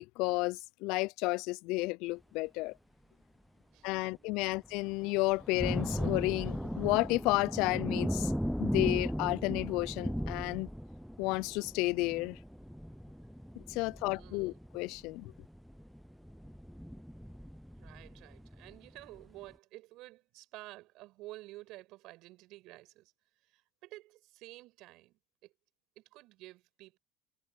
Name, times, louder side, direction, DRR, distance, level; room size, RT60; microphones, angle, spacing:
voice 1, 0.0-2.7 3.8-8.3 8.6-10.7 11.2-12.4 13.7-15.3, left 22 dB, 65° left, 0.5 m, -32 dB
voice 2, 3.6-4.7 14.0-14.6 17.8-23.1 23.4-25.5 26.0-27.0, right 18 dB, 65° right, 6.2 m, -52 dB
sound 1, 4.7-4.8 5.3-18.8 19.2-19.3, equal, ahead, 0.6 m, -37 dB
supercardioid pair, 105°, 0 cm